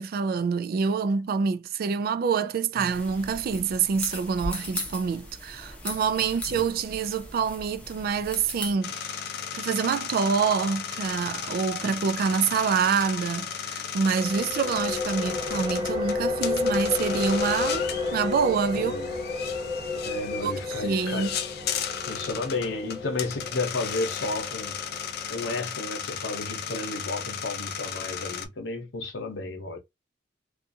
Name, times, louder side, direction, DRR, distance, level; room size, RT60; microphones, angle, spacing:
voice 1, 0.0-18.9 20.4-21.3, right 6 dB, 55° right, 0.3 m, -26 dB
sound 1, 2.9-8.7, left 1 dB, 5° left, 0.7 m, -38 dB
sound 2, 8.8-28.5, left 8 dB, 60° left, 0.5 m, -35 dB
sound 3, 14.1-25.5, left 3 dB, 35° right, 1.0 m, -32 dB
voice 2, 18.8-19.1 20.1-21.3 22.1-24.8 25.3-29.8, left 2 dB, 80° left, 0.8 m, -32 dB
2.5 x 2.4 x 2.6 m
head